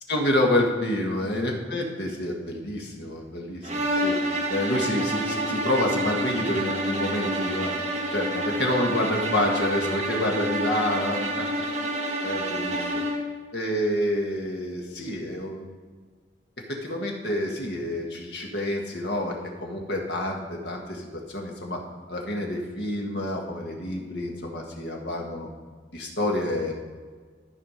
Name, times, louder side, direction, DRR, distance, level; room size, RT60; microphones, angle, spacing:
voice 1, 0.1-4.2 4.5-7.7 8.1-11.5 12.2-13.0 13.5-15.8 16.7-21.8 22.1-25.5 25.9-26.7, left 1 dB, 60° left, 0 dB, 1.7 m, -28 dB
sound 1, 3.6-13.3, right 1 dB, 35° right, 1.3 m, -28 dB
13.0 x 5.0 x 5.1 m, 1.5 s
head